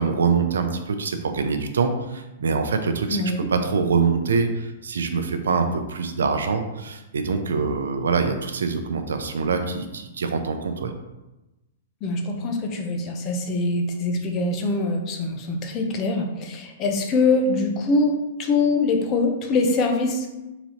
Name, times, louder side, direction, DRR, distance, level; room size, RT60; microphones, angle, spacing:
voice 1, 0.0-10.9, right 5 dB, 85° right, 7 dB, 0.5 m, -24 dB
voice 2, 3.1-3.5 12.0-18.1 18.4-20.3, left 3 dB, 35° left, 3 dB, 0.7 m, -23 dB
4.0 x 2.8 x 4.3 m, 1.0 s
hypercardioid pair, 130°, 0 cm